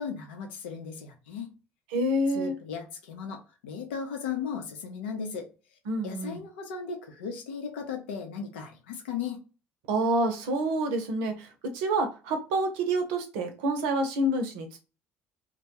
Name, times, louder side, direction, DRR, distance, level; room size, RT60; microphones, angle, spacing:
voice 1, 0.0-1.5 2.3-5.5 6.0-9.4, left 6 dB, 85° left, 0.7 m, -36 dB
voice 2, 1.9-2.5 5.9-6.4 9.9-11.5 11.7-14.8, right 1 dB, 80° right, 0.6 m, -27 dB
2.2 x 2.1 x 2.8 m
hypercardioid pair, 65°, 6 cm